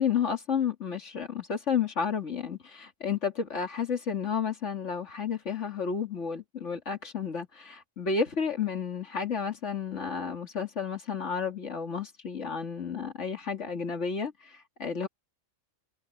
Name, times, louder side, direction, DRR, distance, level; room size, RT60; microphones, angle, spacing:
voice 1, 0.0-15.1, left 6 dB, 70° left, 2.7 m, -31 dB
omnidirectional pair, 1.3 m